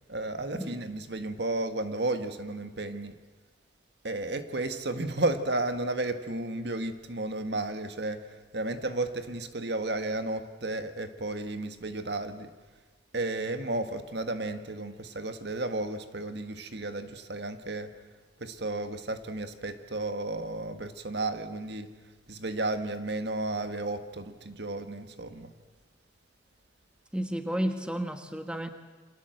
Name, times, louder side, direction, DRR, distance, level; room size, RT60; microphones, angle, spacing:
voice 1, 0.1-3.1 4.0-12.5 13.1-17.9 18.4-21.9 22.3-25.5, right 2 dB, 55° right, 8 dB, 1.7 m, -33 dB
voice 2, 27.1-28.7, equal, 5° right, 7 dB, 1.4 m, -32 dB
29.0 x 25.5 x 7.9 m, 1.3 s
head